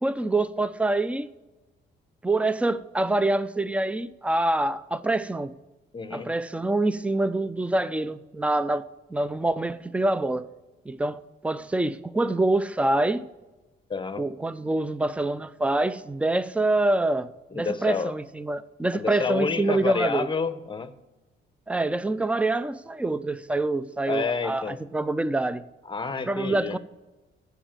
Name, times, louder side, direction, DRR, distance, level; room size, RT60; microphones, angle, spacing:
voice 1, 0.0-1.3 2.2-5.5 6.1-10.5 10.9-13.2 14.2-17.3 17.5-20.3 21.7-25.6 26.3-26.8, right 2 dB, 5° right, 0.5 m, -26 dB
voice 2, 5.9-6.3 13.9-14.2 17.5-18.2 18.9-20.9 24.1-24.8 25.9-26.8, left 5 dB, 25° left, 0.8 m, -29 dB
8.1 x 7.0 x 7.4 m
cardioid pair, 90°, 20 cm